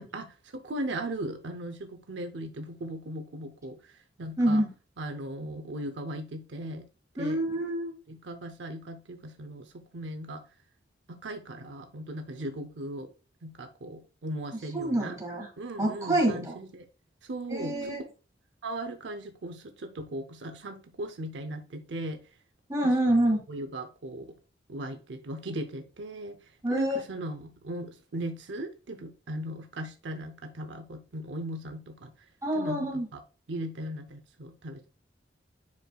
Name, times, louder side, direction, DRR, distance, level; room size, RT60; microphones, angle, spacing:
voice 1, 0.0-4.6 5.0-6.9 7.2-7.4 8.1-10.4 11.1-13.1 13.4-15.2 15.6-16.9 17.2-17.7 18.6-22.3 22.8-23.0 23.5-24.4 24.7-32.3 32.6-33.2 33.5-34.9, right 1 dB, 80° right, 6 dB, 0.7 m, -38 dB
voice 2, 4.4-4.7 7.2-7.9 14.7-15.5 15.8-16.6 17.5-18.0 22.7-23.4 26.6-27.0 32.4-33.1, right 1 dB, 20° right, 0 dB, 2.0 m, -26 dB
9.5 x 4.6 x 2.3 m, 0.35 s
head